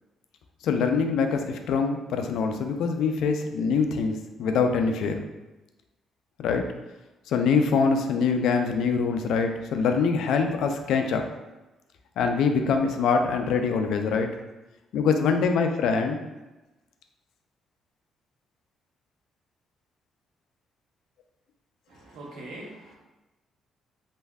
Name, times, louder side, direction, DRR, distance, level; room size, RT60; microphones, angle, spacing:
voice 1, 0.6-5.2 6.4-6.6 7.3-11.3 12.2-14.3 14.9-16.2, left 5 dB, 80° left, 5 dB, 0.3 m, -24 dB
voice 2, 21.9-23.0, right 1 dB, 80° right, -3 dB, 0.7 m, -42 dB
3.3 x 2.5 x 2.3 m, 1.1 s
cardioid pair, 90°, 0 cm